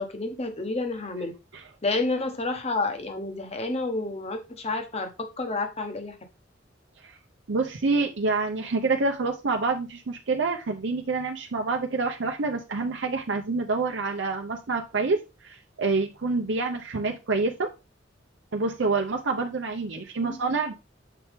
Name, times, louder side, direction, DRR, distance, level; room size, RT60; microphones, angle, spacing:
voice 1, 0.0-1.3 1.8-5.1 5.4-6.2 20.2-20.4, left 3 dB, 35° left, 1.1 m, -29 dB
voice 2, 7.5-17.7 18.5-20.7, right 3 dB, 85° right, 0.7 m, -27 dB
7.0 x 4.4 x 3.5 m
head